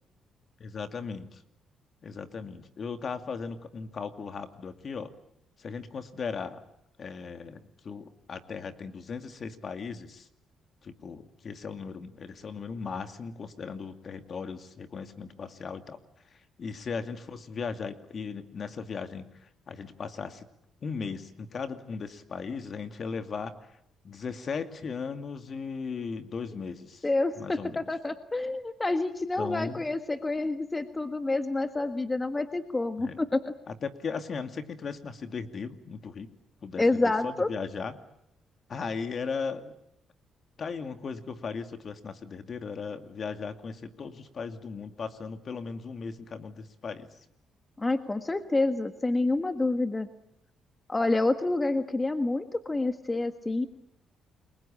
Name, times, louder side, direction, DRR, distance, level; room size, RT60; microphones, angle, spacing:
voice 1, 0.6-1.4 2.0-5.1 5.6-6.6 7.0-10.3 10.8-16.0 16.6-19.3 19.7-20.5 20.8-23.6 24.0-27.1 27.4-27.8 29.4-29.8 33.0-33.2 33.7-36.3 36.6-38.0 38.7-39.7 40.6-47.1, left 5 dB, 50° left, 9 dB, 2.4 m, -37 dB
voice 2, 27.0-33.5 36.8-37.5 47.8-50.1 50.9-53.7, left 2 dB, 20° left, 9 dB, 1.6 m, -28 dB
29.5 x 22.5 x 9.0 m, 0.79 s
cardioid pair, 90°, 0 cm